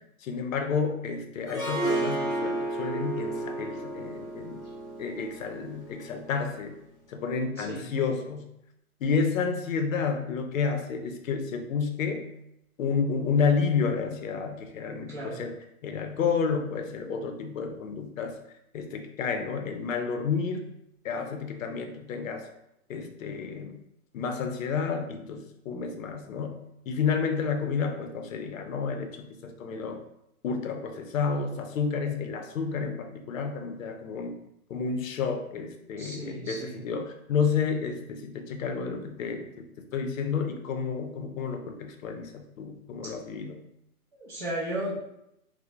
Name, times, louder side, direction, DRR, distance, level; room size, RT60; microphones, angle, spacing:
voice 1, 0.2-4.6 5.0-6.7 7.1-8.5 9.0-12.3 12.8-15.6 15.8-18.4 18.7-20.7 21.0-22.5 22.9-23.8 24.1-26.6 26.9-30.0 30.4-34.4 34.7-39.6 39.9-43.6, left 5 dB, 60° left, 5 dB, 0.5 m, -30 dB
Harp, 1.5-6.5, right 2 dB, 25° left, 0.8 m, -32 dB
voice 2, 15.1-15.4 36.0-36.8 43.0-43.1 44.1-44.9, right 1 dB, 35° right, -10 dB, 0.5 m, -35 dB
2.3 x 2.1 x 2.7 m, 0.81 s
hypercardioid pair, 160°, 44 cm